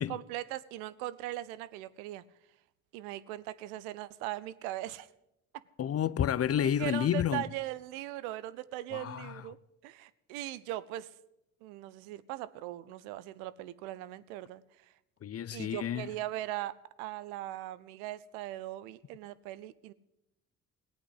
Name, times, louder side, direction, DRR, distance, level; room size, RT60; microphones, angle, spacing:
voice 1, 0.0-2.2 2.9-5.1 6.8-9.6 9.8-11.1 11.6-14.6 15.5-19.9, right 15 dB, 80° right, 0.6 m, -39 dB
voice 2, 5.8-7.4 8.9-9.4 15.2-16.1, left 9 dB, 35° left, 0.6 m, -30 dB
16.0 x 8.6 x 8.1 m
hypercardioid pair, 40°, 43 cm